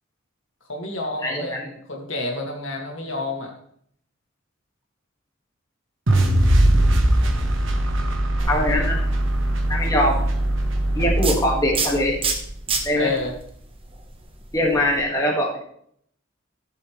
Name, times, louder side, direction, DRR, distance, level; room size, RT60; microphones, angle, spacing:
voice 1, 0.7-3.5 13.0-13.3 14.8-14.9, left 3 dB, 65° left, 0 dB, 2.3 m, -29 dB
voice 2, 1.2-1.6 8.5-9.0 9.7-10.2 10.9-12.2 12.8-13.1 14.5-15.6, left 1 dB, 15° left, -3 dB, 2.0 m, -22 dB
sound 1, 6.1-12.2, right 1 dB, 65° right, 1.3 m, -20 dB
sound 2, 8.4-15.0, right 3 dB, 25° right, 1.2 m, -30 dB
14.5 x 7.1 x 3.3 m, 0.67 s
head